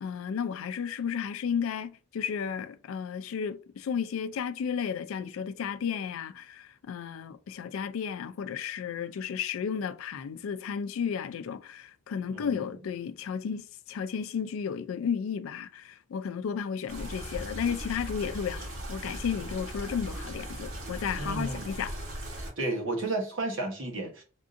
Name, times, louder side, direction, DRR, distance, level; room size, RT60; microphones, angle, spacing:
voice 1, 0.0-21.9, left 7 dB, 80° left, 0.3 m, -33 dB
voice 2, 12.3-12.6 21.2-21.7 22.6-24.2, right 2 dB, 65° right, 1.0 m, -32 dB
sound 1, 16.9-22.5, right 1 dB, 85° right, 1.2 m, -38 dB
3.5 x 2.5 x 2.5 m
head